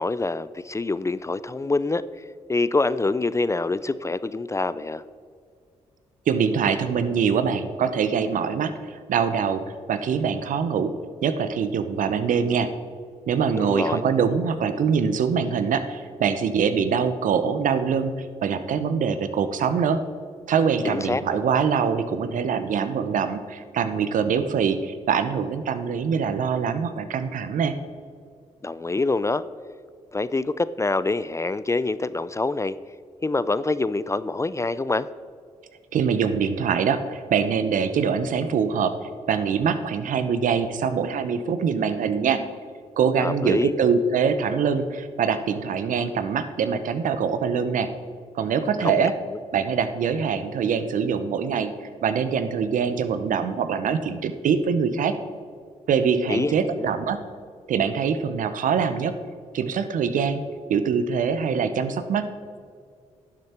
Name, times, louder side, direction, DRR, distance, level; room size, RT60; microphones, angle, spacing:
voice 1, 0.0-2.0 2.5-5.0 13.6-14.0 20.8-21.4 28.6-29.4 30.1-32.8 33.2-35.1 43.2-43.7 48.8-49.1 56.3-56.9, left 3 dB, 20° left, 16 dB, 0.4 m, -25 dB
voice 2, 6.3-9.6 9.9-10.9 11.2-12.7 13.3-20.0 20.5-27.7 35.9-38.9 39.3-42.4 43.0-47.9 48.3-49.1 49.5-51.7 52.0-55.2 55.9-57.2 57.7-59.1 59.5-60.4 60.7-62.2, right 6 dB, 70° right, 11 dB, 0.8 m, -24 dB
11.0 x 7.5 x 4.4 m, 2.2 s
supercardioid pair, 50°, 14 cm